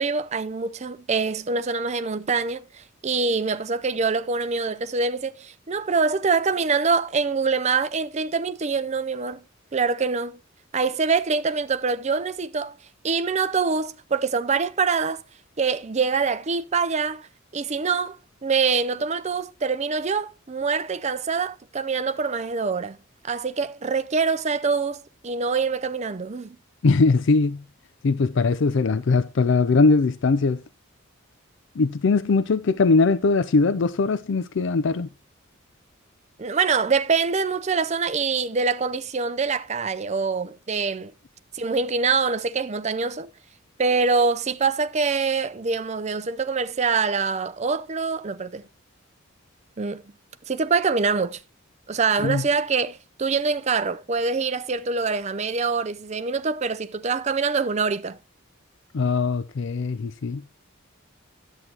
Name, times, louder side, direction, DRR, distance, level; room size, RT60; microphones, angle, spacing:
voice 1, 0.0-9.4 9.7-10.4 10.7-12.7 13.0-15.2 15.6-17.3 17.5-23.0 23.2-26.6 36.4-41.1 41.5-43.3 43.8-48.6 49.8-50.0 50.5-51.4 51.9-58.2, right 4 dB, 35° right, 0.5 m, -25 dB
voice 2, 26.8-27.6 28.0-30.6 31.8-35.1 52.2-52.5 58.9-60.4, left 4 dB, 60° left, 0.4 m, -21 dB
11.0 x 8.2 x 2.9 m
head